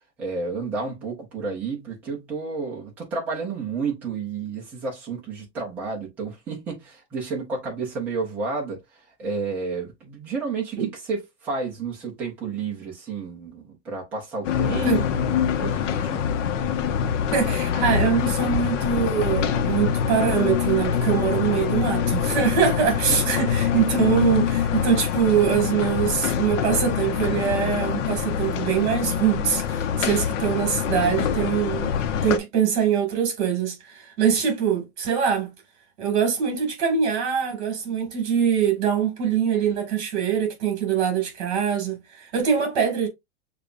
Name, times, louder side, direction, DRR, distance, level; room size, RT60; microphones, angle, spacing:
voice 1, 0.2-8.8 9.2-16.4 23.1-23.3, right 4 dB, 5° right, 0.3 m, -31 dB
sound 1, 14.4-32.4, left 8 dB, 80° left, 0.8 m, -25 dB
voice 2, 17.3-32.0 32.2-35.5 36.0-43.1, right 7 dB, 40° right, 1.8 m, -23 dB
6.6 x 2.3 x 2.4 m
supercardioid pair, 170°, 36 cm